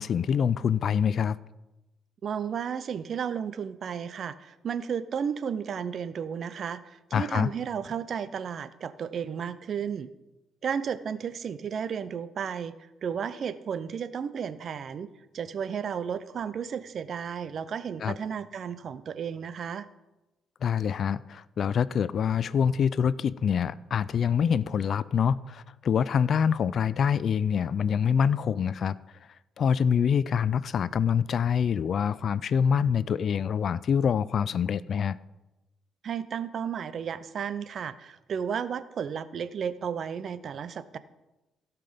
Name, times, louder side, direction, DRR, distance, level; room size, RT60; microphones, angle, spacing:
voice 1, 0.0-1.4 7.1-7.5 18.0-18.2 20.6-29.0 29.6-35.2, left 7 dB, 55° left, 0.4 m, -25 dB
voice 2, 2.2-10.1 10.6-12.7 13.0-19.9 36.0-41.0, right 7 dB, 55° right, 0.6 m, -33 dB
16.5 x 5.9 x 5.1 m
cardioid pair, 90°, 0 cm